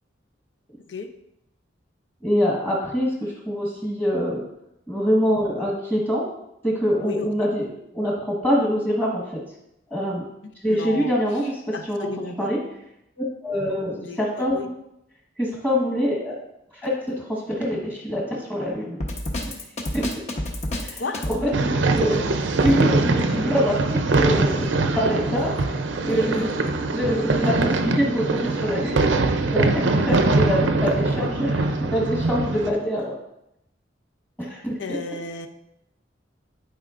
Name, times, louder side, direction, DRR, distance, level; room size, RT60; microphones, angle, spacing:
voice 1, 2.2-4.4 4.9-6.3 6.6-7.7 7.9-9.4 9.9-10.2 10.6-12.1 12.4-12.6 13.2-14.7 15.4-16.3 16.7-19.0 19.9-20.0 20.8-21.0 21.4-22.2 22.6-25.7 26.0-26.6 26.9-33.2 34.4-34.7, equal, 10° left, -4 dB, 1.4 m, -24 dB
voice 2, 7.0-7.5 10.7-12.5 14.0-14.7 21.0-21.3 34.8-35.5, left 3 dB, 70° left, 7 dB, 0.7 m, -34 dB
Drum kit, 19.0-21.4, left 1 dB, 35° left, 1.0 m, -28 dB
sound 1, 21.5-32.7, right 3 dB, 75° right, 0.6 m, -22 dB
11.0 x 4.6 x 2.5 m, 0.81 s
head